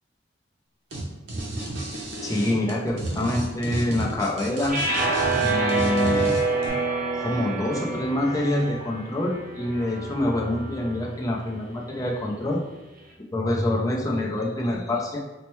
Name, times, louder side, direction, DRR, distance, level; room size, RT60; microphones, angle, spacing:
sound 1, 0.9-1.0 1.3-6.7, right 2 dB, 90° right, 0.8 m, -32 dB
voice 1, 2.2-4.8 5.4-6.4 7.1-12.6 13.3-15.2, left 1 dB, 20° left, -2 dB, 0.5 m, -26 dB
sound 2, 4.7-11.0, right 3 dB, 50° right, 0.6 m, -27 dB
4.2 x 2.1 x 3.0 m, 1.1 s
head